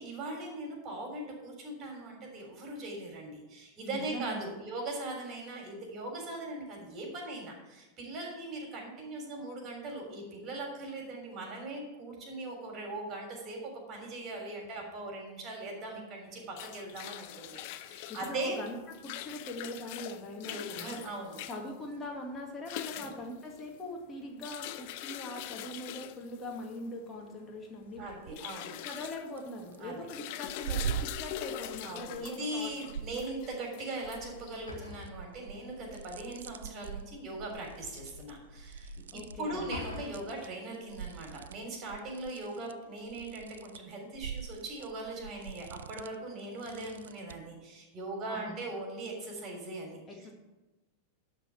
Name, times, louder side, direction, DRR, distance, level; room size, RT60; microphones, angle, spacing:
voice 1, 0.0-18.6 20.4-21.4 22.9-23.2 28.0-28.8 29.8-30.1 31.8-38.9 39.4-50.3, right 2 dB, 30° right, 1 dB, 3.5 m, -40 dB
voice 2, 3.9-4.6 18.1-21.0 21.4-28.4 28.8-32.7 39.1-39.6 48.3-48.6 50.1-50.3, left 1 dB, 20° left, 0 dB, 2.1 m, -42 dB
sound 1, 16.3-34.8, left 13 dB, 45° left, 0.5 m, -44 dB
sound 2, 27.9-28.5 28.9-29.8 30.4-33.7 34.1-40.5 40.7-47.5, right 8 dB, 65° right, 0.3 m, -43 dB
sound 3, 34.0-40.0, left 3 dB, 80° left, 1.5 m, -48 dB
12.0 x 4.2 x 7.7 m, 1.1 s
figure-of-eight pair, 90°, 0 cm